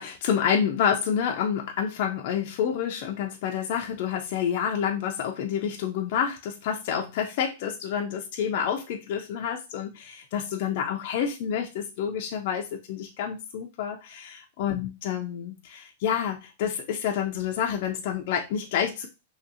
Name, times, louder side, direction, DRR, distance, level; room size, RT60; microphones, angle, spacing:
voice 1, 0.0-19.1, left 8 dB, 40° left, 2 dB, 0.3 m, -28 dB
2.7 x 2.6 x 2.6 m, 0.27 s
supercardioid pair, 175°, 0 cm